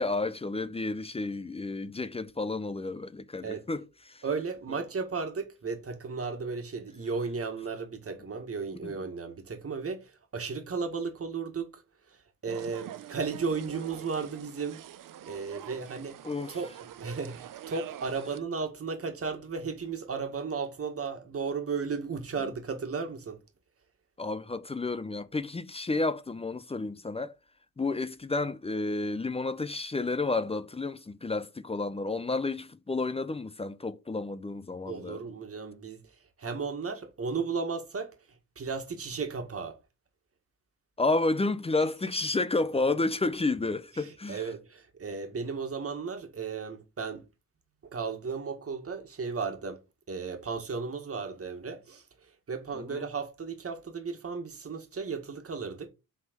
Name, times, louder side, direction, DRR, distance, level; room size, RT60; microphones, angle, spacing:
voice 1, 0.0-4.2 8.8-9.0 16.2-16.6 24.2-27.3 27.8-35.2 41.0-44.5 52.7-53.1, left 3 dB, 15° left, 0.5 m, -31 dB
voice 2, 4.2-11.8 12.1-12.2 12.4-14.8 15.3-16.2 16.5-16.7 17.0-23.4 34.9-36.1 36.4-38.2 38.6-39.8 44.0-47.3 47.8-49.8 50.1-52.0 52.5-55.9, right 5 dB, 40° right, 1.8 m, -35 dB
sound 1, 12.5-18.4, right 11 dB, 65° right, 0.7 m, -45 dB
6.4 x 3.7 x 5.2 m
cardioid pair, 90°, 35 cm